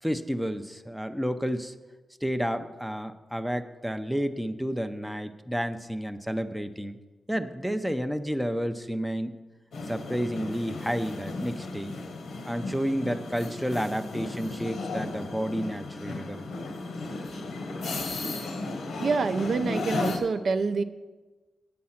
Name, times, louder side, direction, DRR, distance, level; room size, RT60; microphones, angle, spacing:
voice 1, 0.0-1.7 2.2-7.0 7.3-9.4 9.9-11.9 12.5-16.5, equal, ahead, 8 dB, 0.5 m, -31 dB
sound 1, 9.7-20.2, left 2 dB, 85° left, 1.2 m, -35 dB
voice 2, 19.0-20.8, right 4 dB, 60° right, 8 dB, 0.5 m, -26 dB
8.6 x 8.5 x 5.7 m, 1.2 s
wide cardioid pair, 120°, 0 cm